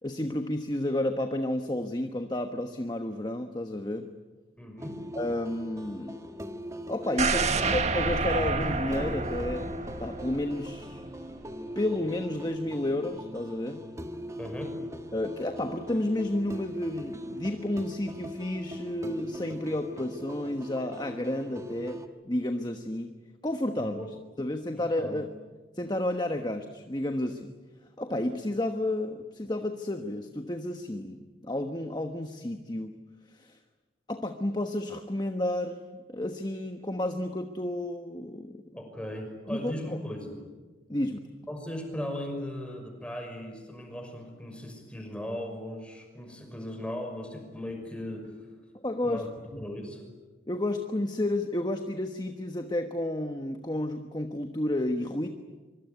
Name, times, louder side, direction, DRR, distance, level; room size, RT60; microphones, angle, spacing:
voice 1, 0.0-4.1 5.1-6.2 6.9-11.0 11.7-13.9 15.1-23.2 23.4-24.0 24.4-25.3 25.7-27.5 28.0-33.0 33.3-33.6 34.1-38.6 39.5-39.7 40.9-41.2 48.8-49.2 49.5-49.6 50.5-55.3, left 1 dB, 25° left, 6 dB, 1.3 m, -31 dB
voice 2, 4.6-5.0 7.5-7.6 14.4-14.8 23.8-24.1 24.8-25.2 38.7-40.4 41.5-48.4 49.0-50.0, left 1 dB, 5° left, 4 dB, 6.0 m, -38 dB
sound 1, 4.8-22.1, equal, 15° right, 1.6 m, -41 dB
sound 2, 7.2-11.2 11.5-11.6, right 3 dB, 40° right, 1.7 m, -29 dB
24.5 x 24.5 x 9.5 m, 1.3 s
head